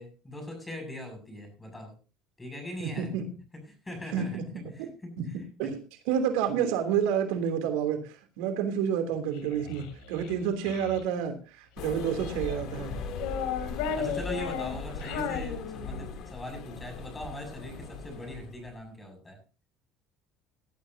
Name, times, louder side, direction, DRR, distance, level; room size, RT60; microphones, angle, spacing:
voice 1, 0.0-1.9 2.4-3.1 3.5-4.4 4.7-5.2 5.6-5.7 13.8-19.4, left 1 dB, 10° left, 5 dB, 6.9 m, -40 dB
voice 2, 2.8-3.2 4.1-4.5 5.2-5.3 5.6-5.8 6.1-12.9, right 8 dB, 90° right, 6 dB, 3.1 m, -29 dB
Child speech kid speaking, 9.3-11.0 11.8-12.6 13.1-16.2, left 7 dB, 90° left, 3.1 m, -35 dB
sound 1, 11.8-18.7, left 4 dB, 65° left, 3.0 m, -39 dB
19.0 x 12.5 x 2.8 m, 0.33 s
cardioid pair, 125°, 0 cm